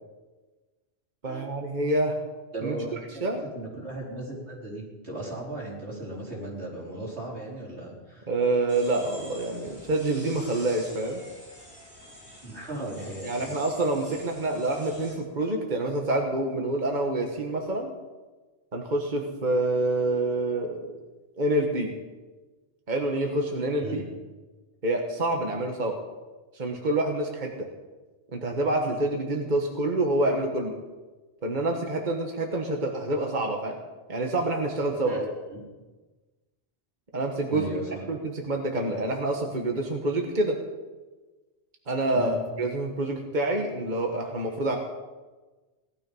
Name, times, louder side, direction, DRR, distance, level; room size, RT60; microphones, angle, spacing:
voice 1, 1.2-2.2 2.6-2.8 3.2-3.4 8.3-11.2 13.2-17.9 18.7-21.0 21.4-21.9 22.9-24.0 24.8-26.0 26.5-27.7 28.3-30.8 31.4-33.8 34.1-35.2 37.1-37.7 38.1-40.6 41.9-44.8, right 2 dB, 45° right, 2 dB, 1.6 m, -27 dB
voice 2, 2.5-3.2 3.5-8.3 12.4-13.5 23.8-24.0 35.0-35.3 35.5-35.6 37.5-38.0 42.1-42.4, right 1 dB, 85° right, -4 dB, 5.0 m, -36 dB
sound 1, 8.7-15.1, equal, 5° right, 6.6 m, -47 dB
18.5 x 12.5 x 5.5 m, 1.2 s
omnidirectional pair, 1.1 m